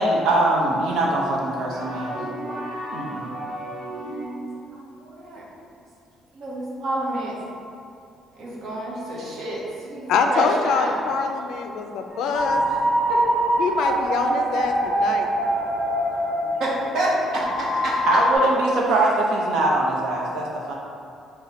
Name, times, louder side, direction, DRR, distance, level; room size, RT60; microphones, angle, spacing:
voice 1, 0.0-2.2 2.9-3.4 16.4-16.6 18.1-20.7, right 2 dB, 70° right, -3 dB, 0.7 m, -22 dB
sound 1, 1.7-4.6, right 1 dB, 30° right, 0.7 m, -33 dB
voice 2, 4.5-5.4 6.3-7.3 8.4-10.9 13.1-13.2 13.9-14.0 14.3-14.4 16.6-18.1, right 1 dB, 50° right, -5 dB, 1.0 m, -28 dB
voice 3, 10.1-12.6 13.6-15.3, left 5 dB, 65° left, 4 dB, 0.3 m, -24 dB
sound 2, 12.1-18.3, right 1 dB, 5° right, 1.0 m, -24 dB
5.6 x 2.2 x 4.1 m, 2.5 s
cardioid pair, 180°, 0 cm